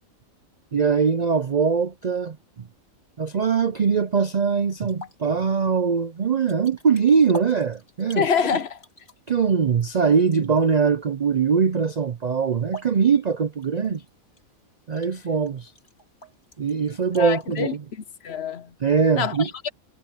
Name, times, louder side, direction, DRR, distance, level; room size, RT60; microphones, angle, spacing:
voice 1, 0.7-2.7 3.2-8.3 9.3-14.0 14.9-15.7 16.6-17.8 18.8-19.5, right 6 dB, 55° right, 0.4 m, -22 dB
sound 1, 3.2-17.6, right 2 dB, 35° left, 3.6 m, -47 dB
voice 2, 8.2-8.8 17.2-17.7 18.2-18.7 19.1-19.7, left 7 dB, 55° left, 0.9 m, -25 dB
omnidirectional pair, 1.5 m